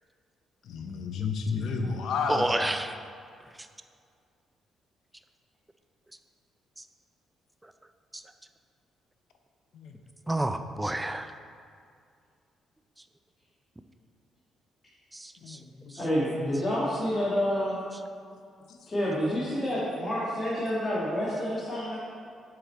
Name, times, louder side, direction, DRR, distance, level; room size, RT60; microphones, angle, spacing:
voice 1, 0.7-2.5 9.7-9.9 15.4-16.0, left 5 dB, 70° left, 4 dB, 0.7 m, -31 dB
voice 2, 2.3-3.0 10.3-11.3 15.1-15.6, right 1 dB, 10° right, 9 dB, 0.4 m, -29 dB
voice 3, 16.0-17.8 18.9-22.0, equal, 30° left, -8 dB, 1.7 m, -28 dB
7.7 x 5.0 x 4.4 m, 2.3 s
cardioid pair, 90°, 0 cm